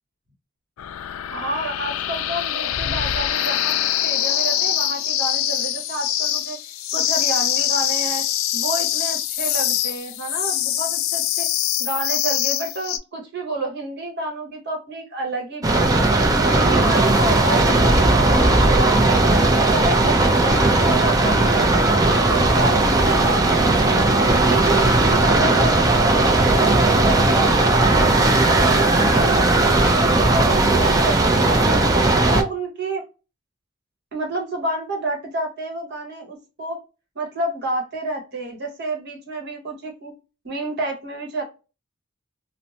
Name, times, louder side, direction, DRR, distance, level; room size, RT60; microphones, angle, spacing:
sound 1, 0.8-13.0, left 11 dB, 75° left, 0.3 m, -24 dB
voice 1, 1.3-6.6 6.9-8.3 8.5-11.5 11.8-16.1 16.5-19.3 19.7-24.0 24.4-28.1 28.4-31.7 32.2-33.0 34.1-36.8 37.1-40.1 40.4-41.4, right 2 dB, 55° right, 1 dB, 1.1 m, -29 dB
sound 2, 15.6-32.4, right 2 dB, 15° right, 0.4 m, -17 dB
2.6 x 2.1 x 2.7 m, 0.31 s
head